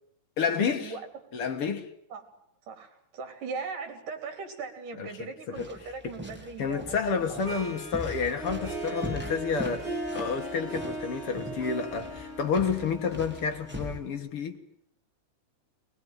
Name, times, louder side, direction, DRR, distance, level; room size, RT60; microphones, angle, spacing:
voice 1, 0.4-1.0 1.3-1.9 5.0-5.7 6.0-6.1 6.6-9.9 10.1-14.6, left 6 dB, 50° left, 1.9 m, -30 dB
voice 2, 2.7-7.5, right 4 dB, 65° right, 5.1 m, -39 dB
sound 1, 5.6-14.0, equal, 5° right, 2.7 m, -41 dB
Harp, 7.5-14.3, right 2 dB, 30° right, 4.3 m, -38 dB
22.0 x 21.0 x 9.1 m
omnidirectional pair, 4.0 m